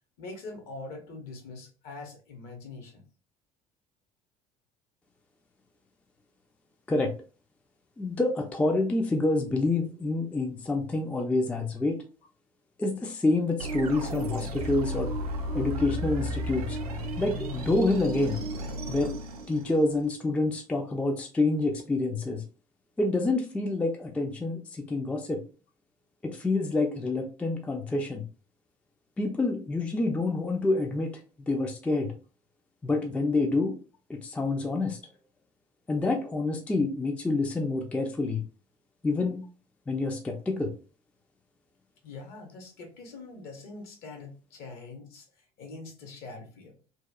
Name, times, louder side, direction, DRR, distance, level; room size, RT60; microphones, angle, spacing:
voice 1, 0.2-3.0 42.0-45.2 45.6-46.7, left 3 dB, 55° left, 3 dB, 0.8 m, -43 dB
voice 2, 8.0-12.0 12.8-15.1 15.5-16.8 17.2-18.4 18.9-19.2 19.5-22.4 23.0-25.4 26.2-28.3 29.2-31.1 31.5-32.1 32.8-33.7 34.1-35.0 35.9-38.4 39.0-39.4 39.9-40.7, left 2 dB, 5° left, 4 dB, 0.3 m, -27 dB
sound 1, 13.6-20.1, equal, 80° right, 0.5 m, -34 dB
2.8 x 2.2 x 2.2 m, 0.36 s
figure-of-eight pair, 55°, 19 cm